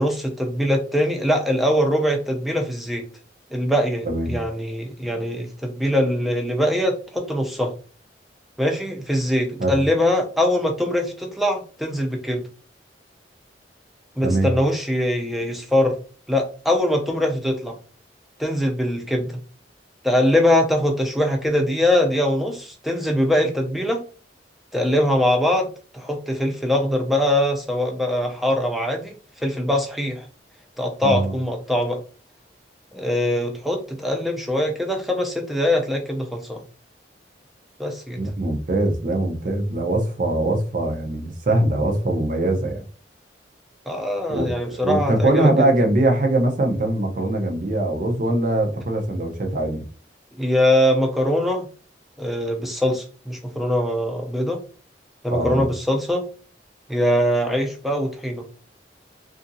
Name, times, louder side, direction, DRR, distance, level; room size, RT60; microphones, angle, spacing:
voice 1, 0.0-3.0 3.5-7.7 8.6-12.5 14.2-16.0 16.3-17.8 18.4-19.4 20.0-24.0 24.7-25.7 25.9-29.1 29.4-30.3 30.8-32.0 32.9-36.6 37.8-38.2 43.9-45.7 50.3-51.7 52.2-54.6 55.2-56.3 56.9-58.5, left 1 dB, ahead, 0.4 m, -22 dB
voice 2, 4.0-4.4 9.6-9.8 14.2-14.5 31.0-31.3 38.2-42.8 44.3-49.9 55.3-55.7, right 1 dB, 45° right, 0.6 m, -22 dB
2.8 x 2.5 x 2.6 m
head